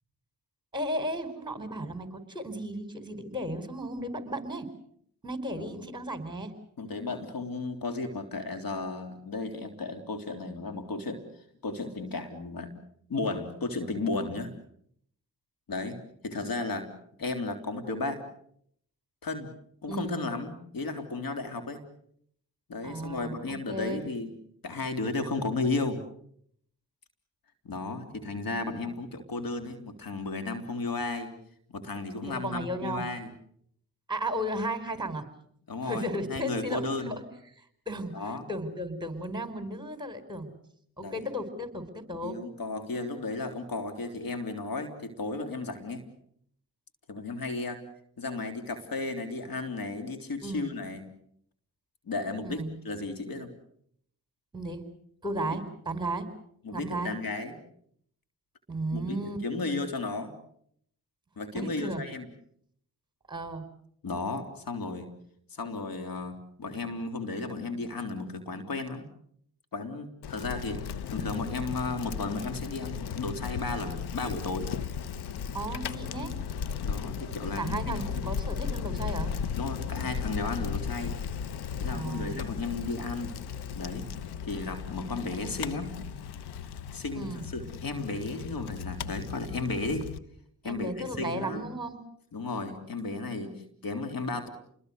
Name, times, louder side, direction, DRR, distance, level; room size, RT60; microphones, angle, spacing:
voice 1, 0.7-4.7 5.2-6.5 19.9-20.2 22.8-24.1 32.2-33.0 34.1-35.2 35.8-37.3 37.6-40.5 41.0-42.4 50.4-50.7 52.4-52.7 54.5-54.9 55.2-56.3 56.7-57.2 58.7-59.4 61.5-62.0 63.3-63.7 75.5-76.3 77.6-79.3 81.9-82.4 87.1-87.4 90.6-92.0, right 1 dB, 10° right, 9 dB, 4.8 m, -34 dB
voice 2, 6.8-11.2 11.6-12.7 13.1-14.5 15.7-16.0 16.2-16.9 17.2-18.2 19.2-19.5 19.8-21.8 22.7-24.3 24.6-26.0 27.6-31.3 31.7-33.3 35.7-37.2 38.1-38.4 41.0-41.3 42.2-46.0 47.1-47.8 48.2-51.1 52.0-53.5 55.3-55.5 56.6-57.6 58.9-60.3 61.4-62.3 64.0-65.1 65.5-69.1 69.7-74.7 76.8-78.3 79.6-81.1 81.8-83.3 83.7-84.1 84.4-85.9 86.9-90.1 90.6-91.6 92.3-94.5, left 3 dB, 65° left, 7 dB, 3.4 m, -34 dB
Bicycle, 70.2-90.2, left 7 dB, 85° left, 1.1 m, -36 dB
29.5 x 21.5 x 6.6 m, 0.67 s
cardioid pair, 55°, 38 cm